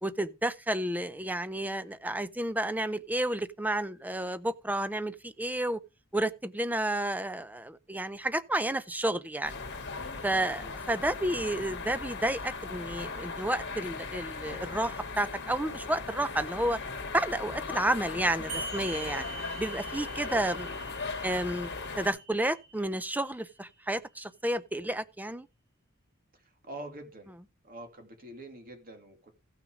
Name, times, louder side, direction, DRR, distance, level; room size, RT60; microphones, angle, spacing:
voice 1, 0.0-5.8 6.1-9.6 10.2-16.8 17.1-19.2 19.6-20.7 21.2-21.7 22.0-25.5, right 1 dB, 10° right, 0.6 m, -31 dB
sound 1, 9.4-22.1, left 4 dB, 55° left, 2.3 m, -38 dB
voice 2, 10.3-10.8 26.3-27.3 27.6-29.3, right 1 dB, 45° right, 2.5 m, -46 dB
sound 2, 18.5-23.5, right 4 dB, 75° right, 3.3 m, -44 dB
15.5 x 6.2 x 5.0 m
head